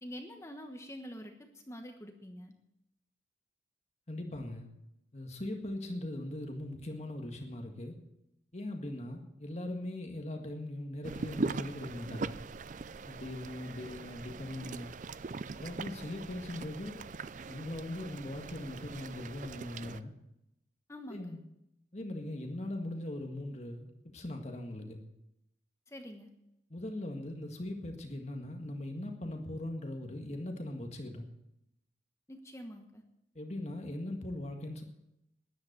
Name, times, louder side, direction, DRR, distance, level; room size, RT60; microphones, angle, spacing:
voice 1, 0.0-2.5 20.9-21.4 25.9-26.3 32.3-33.0, equal, 15° left, 4 dB, 1.2 m, -46 dB
voice 2, 4.1-4.7 5.1-8.0 8.5-12.4 13.1-15.0 15.6-17.0 17.5-20.1 21.1-21.4 21.9-25.0 26.7-31.3 33.4-34.8, left 1 dB, 35° left, 3 dB, 1.7 m, -40 dB
sound 1, 11.0-20.0, right 3 dB, 45° right, 0.4 m, -41 dB
13.5 x 10.5 x 6.8 m, 0.84 s
head